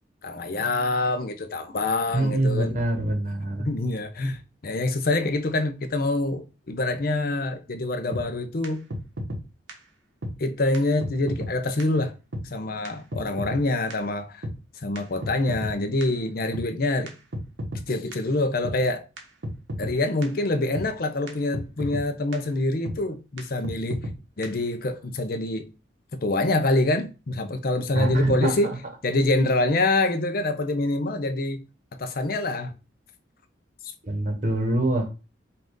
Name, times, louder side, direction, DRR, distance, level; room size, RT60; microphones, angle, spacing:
voice 1, 0.2-2.7 3.6-8.8 10.4-12.1 12.5-14.5 14.8-17.1 17.9-19.1 19.8-24.0 24.4-25.7 26.2-28.7 29.0-31.6 32.0-32.7, left 2 dB, 50° left, 0.6 m, -25 dB
voice 2, 2.1-3.7 27.9-28.8 34.0-35.1, right 1 dB, 40° right, 1.1 m, -25 dB
sound 1, 8.1-8.2 8.6-8.7 8.9-9.4 9.7-9.8 10.2-10.3 10.7-10.8 11.0-11.5 11.8-11.9 12.3-12.4 12.8-12.9 13.1-13.6 13.9-14.0 14.4-14.5 15.0-15.7 16.0-16.1 16.5-16.7 17.1-17.2 17.3-17.8 18.1-18.2 18.6-18.8 19.2-19.3 19.4-19.9 20.2-20.3 20.7-20.9 21.3-21.4 21.5-22.0 22.3-22.4 22.9-23.0 23.4-23.5 23.6-24.2 24.4-24.5, equal, 80° right, 1.2 m, -32 dB
5.6 x 2.5 x 3.8 m
head